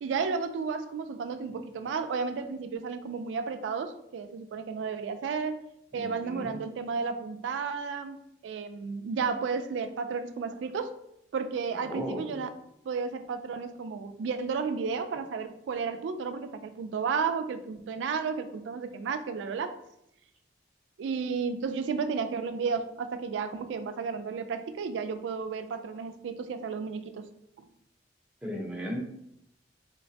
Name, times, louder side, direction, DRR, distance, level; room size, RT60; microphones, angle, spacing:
voice 1, 0.0-5.6 5.9-8.2 8.4-10.9 11.3-12.5 12.8-19.8 21.0-27.3 27.6-27.7, right 5 dB, 85° right, 9 dB, 0.3 m, -33 dB
voice 2, 5.9-6.6 11.8-12.4 28.4-29.0, equal, 5° right, -3 dB, 0.6 m, -36 dB
3.7 x 2.1 x 2.7 m, 0.79 s
head